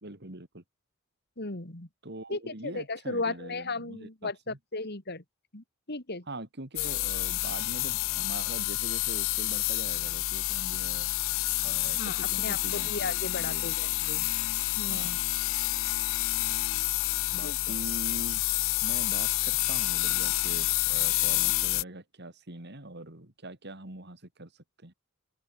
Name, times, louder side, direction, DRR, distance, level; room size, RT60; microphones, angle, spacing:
voice 1, 0.0-0.6 2.0-4.6 6.3-11.1 11.6-13.7 14.9-15.1 17.3-18.4 18.8-24.5 24.8-24.9, right 2 dB, 55° right, 3.4 m, -43 dB
voice 2, 1.4-1.9 2.3-5.2 5.5-6.2 11.9-14.3 14.8-15.2 17.4-17.6, left 3 dB, 50° left, 3.0 m, -36 dB
sound 1, 6.8-21.8, left 18 dB, 70° left, 0.4 m, -29 dB
open air
head